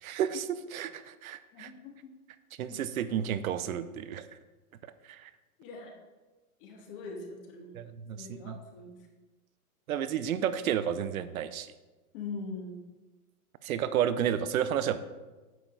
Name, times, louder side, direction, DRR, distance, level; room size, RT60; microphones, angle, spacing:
voice 1, 0.0-1.7 2.6-4.3 5.1-5.3 7.7-8.6 9.9-11.7 13.6-15.0, right 9 dB, 65° right, 13 dB, 0.8 m, -31 dB
voice 2, 1.5-2.1 2.7-3.2 5.6-5.9 6.6-7.8 8.1-9.0 12.1-12.8, left 3 dB, 35° left, 2 dB, 1.6 m, -42 dB
9.2 x 6.8 x 3.9 m, 1.2 s
hypercardioid pair, 155°, 45 cm